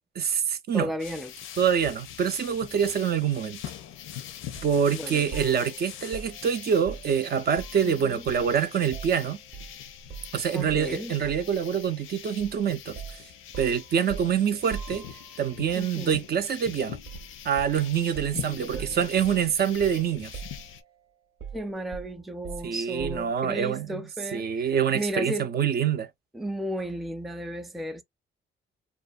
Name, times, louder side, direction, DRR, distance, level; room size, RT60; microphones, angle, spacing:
voice 1, 0.2-0.9 1.6-3.6 4.6-9.4 10.3-13.2 13.6-15.0 15.4-17.0 17.4-20.3 22.6-24.0 24.3-26.1, right 8 dB, 55° right, 0.5 m, -26 dB
voice 2, 0.7-1.3 4.9-5.3 7.8-8.2 10.5-11.1 15.7-16.2 18.3-19.0 21.5-25.5 26.3-28.0, equal, ahead, 0.4 m, -34 dB
sound 1, 1.0-20.8, left 10 dB, 85° left, 0.5 m, -43 dB
sound 2, 4.6-4.8 5.3-7.9 8.3-9.7 10.1-10.3 10.7-11.6 12.4-12.6 13.0-15.5 17.0-17.3 17.6-20.1 20.3-21.0 21.4-23.4, right 6 dB, 80° right, 0.8 m, -42 dB
2.5 x 2.3 x 2.4 m
cardioid pair, 90°, 20 cm